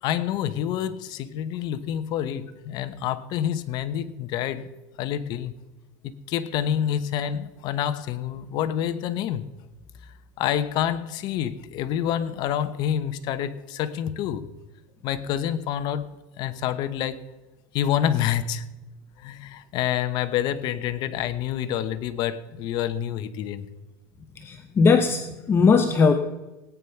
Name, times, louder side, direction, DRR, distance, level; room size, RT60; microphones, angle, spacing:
voice 1, 0.0-4.7 5.0-5.5 6.0-9.5 10.4-14.5 15.0-16.1 16.4-17.2 17.7-18.7 19.2-23.7, left 10 dB, 50° left, 1.1 m, -27 dB
voice 2, 24.4-26.1, left 5 dB, 25° left, 0.9 m, -19 dB
17.5 x 9.5 x 5.8 m
cardioid pair, 140°, 9 cm